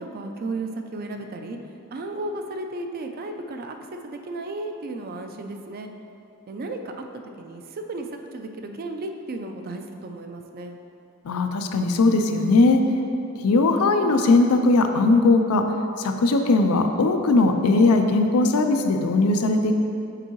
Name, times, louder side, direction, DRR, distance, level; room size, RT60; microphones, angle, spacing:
voice 1, 0.0-1.6 1.9-3.8 4.0-5.9 6.5-6.9 7.4-10.8, right 2 dB, 45° right, 5 dB, 0.4 m, -34 dB
voice 2, 11.2-12.8 13.4-15.6 16.0-19.7, left 3 dB, 85° left, 5 dB, 0.5 m, -19 dB
6.8 x 4.6 x 3.0 m, 2.6 s
head